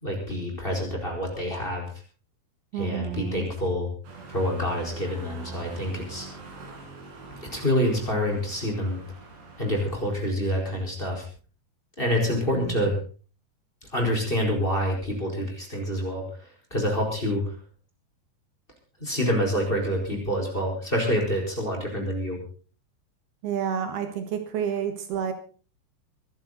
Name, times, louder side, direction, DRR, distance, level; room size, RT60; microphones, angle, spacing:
voice 1, 0.0-1.9 2.7-3.9 4.3-6.3 7.4-9.0 9.6-11.3 12.0-12.9 13.9-17.6 19.0-22.4, equal, 15° left, 1 dB, 4.5 m, -27 dB
voice 2, 2.7-3.5 12.5-12.8 23.4-25.3, right 8 dB, 70° right, 7 dB, 3.4 m, -29 dB
sound 1, 4.0-10.0, right 3 dB, 90° right, 6.8 m, -44 dB
24.0 x 11.0 x 4.1 m, 0.39 s
omnidirectional pair, 4.7 m